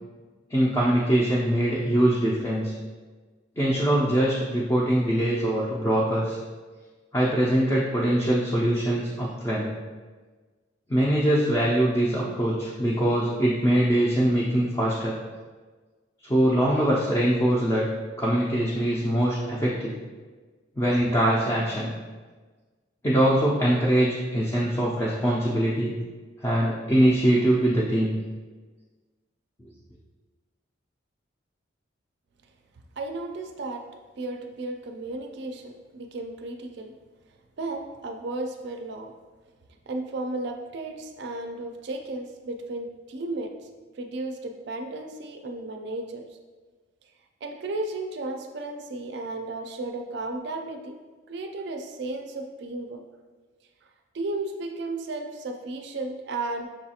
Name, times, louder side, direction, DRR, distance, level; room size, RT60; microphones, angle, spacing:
voice 1, 0.5-2.7 3.6-6.4 7.1-9.7 10.9-15.1 16.2-17.9 18.2-19.9 20.8-21.9 23.0-25.9 26.4-28.1, right 1 dB, 15° left, -6 dB, 0.4 m, -23 dB
voice 2, 33.0-33.9 34.2-36.9 37.6-39.1 39.9-43.5 43.9-46.3 47.4-51.0 51.3-53.0 54.1-56.7, right 2 dB, 55° right, 4 dB, 0.4 m, -34 dB
6.1 x 2.4 x 2.8 m, 1.4 s
head